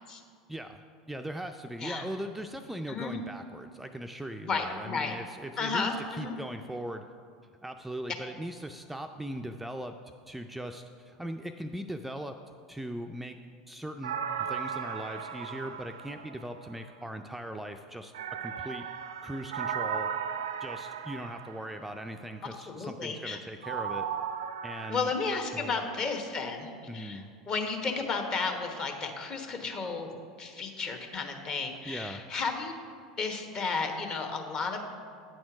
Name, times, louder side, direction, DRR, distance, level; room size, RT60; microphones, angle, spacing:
voice 1, 0.5-0.8 1.1-7.0 7.6-10.0 10.3-12.4 12.7-13.4 13.7-18.1 18.4-18.9 19.2-20.1 20.6-24.1 24.6-25.1 25.6-25.8 26.9-27.3 31.8-32.2, right 1 dB, 5° right, 6 dB, 0.4 m, -39 dB
voice 2, 2.9-3.2 4.4-5.1 5.6-6.4 22.4-23.4 24.9-26.7 26.9-27.2 27.5-30.1 30.4-32.7 33.2-34.8, left 4 dB, 40° left, 4 dB, 1.1 m, -33 dB
sound 1, 14.0-16.8 18.1-22.0 23.6-25.0, right 8 dB, 80° right, 0.4 m, -36 dB
9.0 x 4.3 x 6.0 m, 2.2 s
hypercardioid pair, 80°, 2 cm